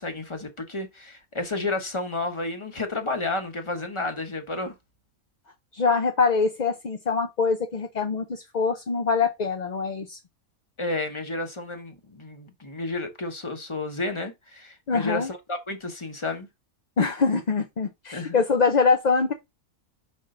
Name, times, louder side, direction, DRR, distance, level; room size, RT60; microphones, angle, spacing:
voice 1, 0.0-4.7 10.8-16.5 18.1-18.4, left 2 dB, 20° left, 1.1 m, -31 dB
voice 2, 5.7-10.2 14.9-15.3 17.0-19.3, left 4 dB, 45° left, 0.5 m, -24 dB
5.5 x 5.3 x 3.8 m
omnidirectional pair, 1.5 m